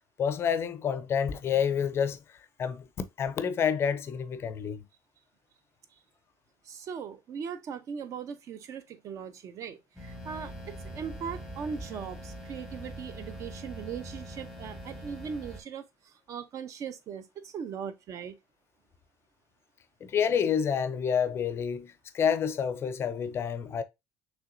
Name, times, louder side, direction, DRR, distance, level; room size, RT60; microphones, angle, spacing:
voice 1, 0.2-2.2 2.6-2.9 3.2-4.8 20.0-23.8, left 7 dB, 30° left, 0.5 m, -28 dB
voice 2, 6.6-18.4, right 7 dB, 40° right, 0.6 m, -39 dB
sound 1, 10.0-15.6, equal, 5° right, 0.9 m, -42 dB
5.7 x 3.3 x 2.5 m
cardioid pair, 160°, 8 cm